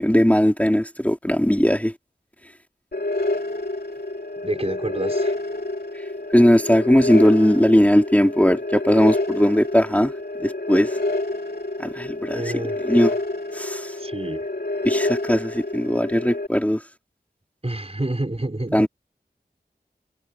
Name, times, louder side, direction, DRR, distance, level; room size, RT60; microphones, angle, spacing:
voice 1, 0.0-1.9 5.9-10.1 10.4-11.0 11.8-13.2 13.5-14.0 14.8-16.8 18.7-18.9, equal, 10° left, 3.6 m, -19 dB
sound 1, 2.9-16.5, left 2 dB, 70° left, 3.0 m, -28 dB
voice 2, 4.4-5.4 12.3-12.8 14.0-14.5 17.6-18.9, right 1 dB, 35° right, 5.9 m, -28 dB
wide cardioid pair, 50°, 17 cm